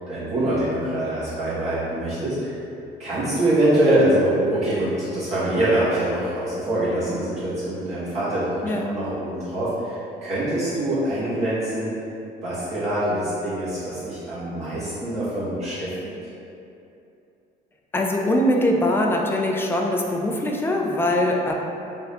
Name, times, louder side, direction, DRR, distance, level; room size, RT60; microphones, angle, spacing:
voice 1, 0.1-2.5 3.0-11.9 12.4-15.9, right 1 dB, 40° right, -13 dB, 1.2 m, -24 dB
voice 2, 17.9-21.5, left 1 dB, 15° left, 0 dB, 0.4 m, -22 dB
3.7 x 2.5 x 3.3 m, 2.7 s
cardioid pair, 110°, 17 cm